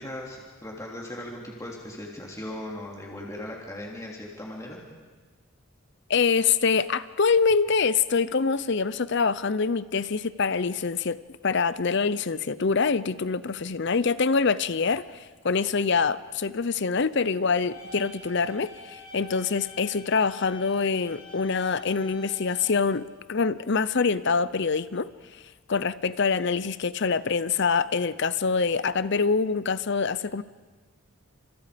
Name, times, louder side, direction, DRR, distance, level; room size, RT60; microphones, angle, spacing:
voice 1, 0.0-4.8, left 1 dB, 15° left, -2 dB, 3.1 m, -38 dB
voice 2, 6.1-11.2 11.4-25.1 25.7-30.4, left 5 dB, 50° left, 16 dB, 0.6 m, -25 dB
sound 1, 17.7-22.7, left 4 dB, 85° left, 7.5 m, -45 dB
29.5 x 27.0 x 5.2 m, 1.3 s
head